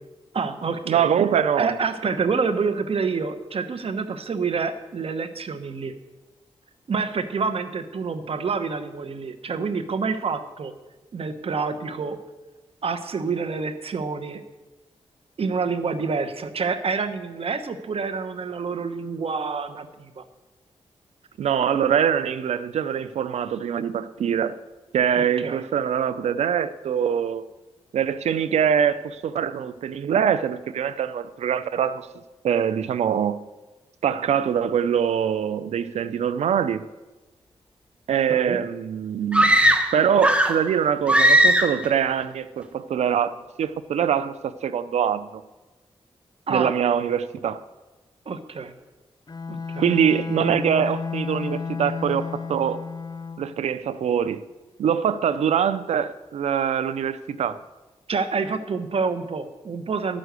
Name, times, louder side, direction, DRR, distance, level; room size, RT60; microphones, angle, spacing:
voice 1, 0.3-1.1 1.6-5.9 6.9-10.7 11.1-12.2 12.8-14.4 15.4-20.2 25.1-25.6 38.3-38.6 46.5-46.7 48.3-48.7 49.5-49.9 58.1-60.2, right 5 dB, 65° right, 1.1 m, -27 dB
voice 2, 0.9-1.8 21.4-24.6 24.9-27.4 27.9-32.1 32.4-33.4 34.0-36.9 38.1-39.6 39.9-45.4 46.5-47.6 49.8-52.8 53.4-54.5 54.8-57.6, right 8 dB, 90° right, 0.5 m, -23 dB
sound 1, 39.3-40.7 41.1-41.9, right 1 dB, 10° right, 1.2 m, -18 dB
Bowed string instrument, 49.3-53.6, left 5 dB, 40° left, 0.7 m, -32 dB
11.5 x 6.3 x 8.1 m
cardioid pair, 60°, 11 cm